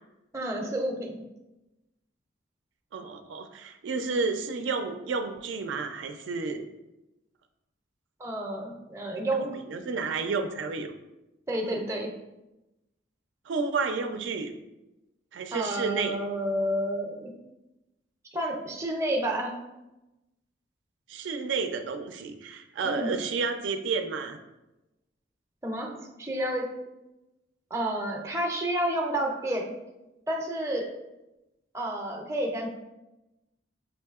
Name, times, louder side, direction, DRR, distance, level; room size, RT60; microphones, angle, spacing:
voice 1, 0.3-1.2 8.2-9.6 11.5-12.1 15.5-17.3 18.3-19.5 22.8-23.2 25.6-26.6 27.7-29.7 30.3-30.9 31.7-32.7, right 1 dB, 15° right, 1 dB, 0.5 m, -30 dB
voice 2, 2.9-6.6 9.7-10.9 11.6-11.8 13.5-14.5 15.3-16.2 21.1-24.4, right 4 dB, 75° right, 6 dB, 0.4 m, -31 dB
6.2 x 2.7 x 2.3 m, 0.98 s
head